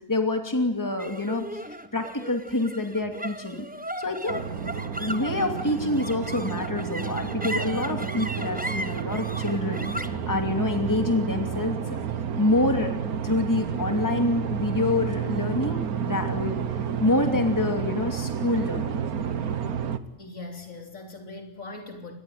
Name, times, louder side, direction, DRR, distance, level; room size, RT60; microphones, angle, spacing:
voice 1, 0.1-1.6 1.9-3.7 4.0-4.4 4.7-12.0 12.4-13.0 13.2-16.6 17.0-19.0, left 2 dB, 10° left, 5 dB, 2.6 m, -27 dB
sound 1, 1.0-17.5, right 1 dB, 5° right, 0.9 m, -38 dB
sound 2, 4.3-20.0, right 8 dB, 70° right, 1.6 m, -30 dB
voice 2, 20.2-22.1, left 2 dB, 60° left, 4 dB, 3.9 m, -40 dB
25.5 x 20.5 x 9.3 m, 0.84 s
omnidirectional pair, 1.6 m